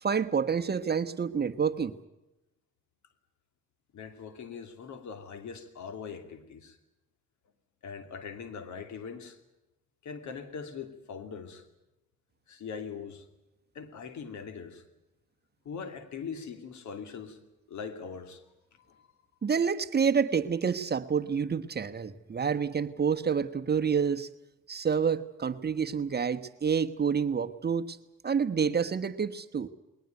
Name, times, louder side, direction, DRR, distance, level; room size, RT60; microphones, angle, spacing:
voice 1, 0.0-1.9 19.4-24.3 24.7-28.0 28.2-29.7, right 6 dB, 35° right, 9 dB, 1.2 m, -28 dB
voice 2, 3.9-6.8 7.8-9.4 10.0-11.6 12.5-13.2 13.7-14.8 15.6-17.4 17.7-18.4 18.9-19.1, left 6 dB, 70° left, 9 dB, 2.8 m, -41 dB
21.0 x 19.5 x 9.2 m, 0.95 s
cardioid pair, 90°, 30 cm